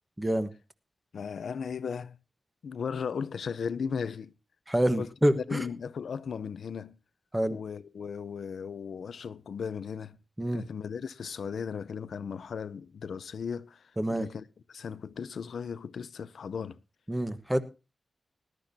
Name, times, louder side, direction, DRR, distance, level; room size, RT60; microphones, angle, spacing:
voice 1, 0.2-0.5 4.7-5.6 7.3-7.6 10.4-10.6 14.0-14.3 17.1-17.6, right 1 dB, 10° right, 1.2 m, -27 dB
voice 2, 1.1-2.2 2.6-4.3 5.0-5.1 5.4-6.9 7.5-10.2 10.5-16.8, left 6 dB, 80° left, 0.6 m, -36 dB
20.0 x 12.0 x 2.7 m
wide cardioid pair, 145°, 0 cm